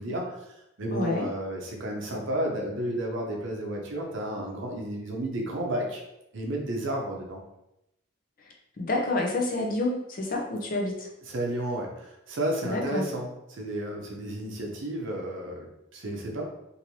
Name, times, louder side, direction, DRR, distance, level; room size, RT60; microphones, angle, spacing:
voice 1, 0.0-6.0 6.3-7.4 11.3-16.4, right 1 dB, 60° right, 0 dB, 0.6 m, -32 dB
voice 2, 0.9-1.3 8.4-11.1 12.6-13.1, left 2 dB, 40° left, 0 dB, 0.5 m, -29 dB
3.0 x 2.6 x 2.7 m, 0.86 s
head